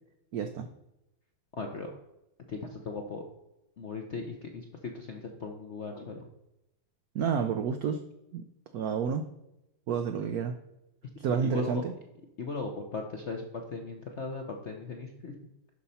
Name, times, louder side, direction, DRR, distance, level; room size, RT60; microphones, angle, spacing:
voice 1, 0.3-0.7 7.1-8.0 8.3-8.5 8.7-9.2 9.9-10.5 11.2-11.9, right 6 dB, 85° right, 8 dB, 0.8 m, -29 dB
voice 2, 1.6-1.9 2.5-3.2 3.8-6.3 11.4-11.8 12.4-15.4, left 4 dB, 60° left, 3 dB, 0.7 m, -38 dB
11.5 x 4.2 x 5.5 m, 0.90 s
omnidirectional pair, 2.2 m